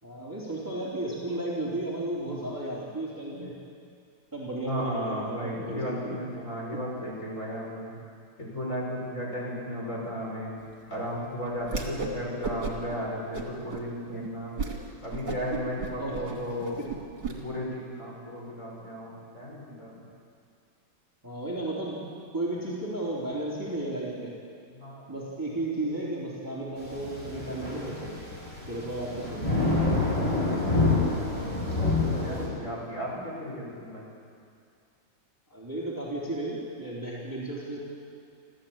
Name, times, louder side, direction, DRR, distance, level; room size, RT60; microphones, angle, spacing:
voice 1, 0.0-3.5 4.3-6.2 9.3-9.4 16.0-16.2 16.8-16.9 21.2-22.1 22.3-24.3 25.1-28.2 28.7-29.5 31.7-31.8 35.5-37.8, right 2 dB, 10° right, -5 dB, 3.6 m, -34 dB
voice 2, 4.7-7.9 8.4-10.5 10.9-14.6 15.0-16.8 17.3-20.1 24.7-25.1 30.4-34.1, equal, 35° left, -4 dB, 5.9 m, -35 dB
Whoosh swoosh swish, 11.6-12.2 12.4-12.9 13.3-13.8 14.2-14.3 14.6-14.8 15.1-17.3, right 4 dB, 60° right, 3.2 m, -34 dB
sound 1, 26.8-32.5, left 2 dB, 15° left, 6.1 m, -27 dB
25.5 x 15.0 x 8.9 m, 2.4 s
omnidirectional pair, 2.3 m